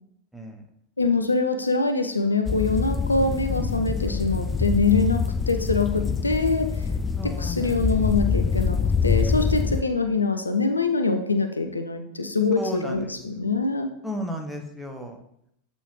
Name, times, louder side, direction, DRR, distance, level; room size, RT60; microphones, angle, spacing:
voice 1, 1.0-6.7 7.2-13.9, left 3 dB, 80° left, 7 dB, 0.5 m, -24 dB
sound 1, 2.5-9.8, left 5 dB, 15° left, 0.3 m, -25 dB
voice 2, 7.2-7.8 12.6-13.1 14.0-15.2, equal, ahead, 2 dB, 0.8 m, -34 dB
8.0 x 4.2 x 3.1 m, 0.75 s
figure-of-eight pair, 90°, 0 cm